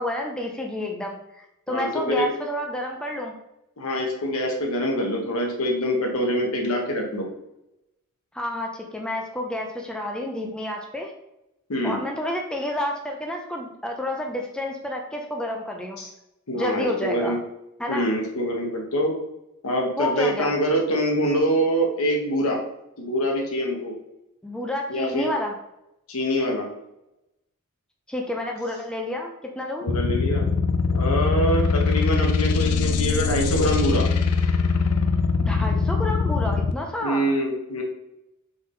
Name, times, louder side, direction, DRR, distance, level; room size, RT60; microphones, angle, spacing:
voice 1, 0.0-3.3 8.3-11.1 11.8-16.0 16.5-17.3 17.8-18.1 20.0-20.5 24.4-25.5 28.1-29.8 35.4-37.3, left 1 dB, 5° left, 1 dB, 0.4 m, -29 dB
voice 2, 1.7-2.3 3.8-7.3 11.7-12.0 16.0-16.1 16.5-17.4 17.9-19.1 19.6-22.6 23.0-23.9 24.9-25.3 26.1-26.7 29.8-30.4 30.9-34.0 37.0-37.8, equal, 70° left, 1 dB, 1.0 m, -24 dB
sound 1, 29.9-36.7, left 4 dB, 90° left, 0.4 m, -22 dB
3.8 x 3.6 x 3.7 m, 0.87 s
head